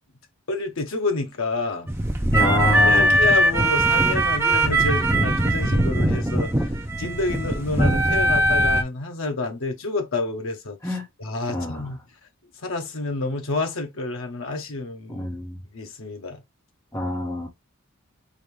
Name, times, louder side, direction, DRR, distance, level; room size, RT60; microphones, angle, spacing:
voice 1, 0.5-1.9 2.9-6.7 7.0-12.0 12.6-15.3 15.7-16.4, left 3 dB, 70° left, 0.8 m, -29 dB
sound 1, 1.9-8.8, right 1 dB, 10° right, 0.5 m, -20 dB
voice 2, 2.3-3.2 10.8-11.0 11.5-11.9 15.1-15.6 16.9-17.5, left 1 dB, 15° left, 1.2 m, -26 dB
5.1 x 2.5 x 3.1 m
head